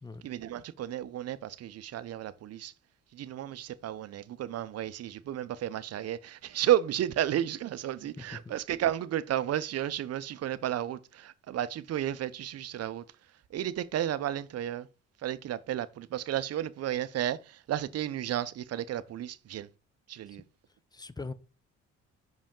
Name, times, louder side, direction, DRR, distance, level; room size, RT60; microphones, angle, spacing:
voice 1, 0.2-2.7 3.1-13.0 13.5-14.9 15.2-19.7 20.1-20.4, right 11 dB, 55° right, 0.6 m, -32 dB
voice 2, 20.9-21.3, left 3 dB, 15° left, 0.5 m, -41 dB
5.6 x 5.1 x 3.6 m
cardioid pair, 90°, 30 cm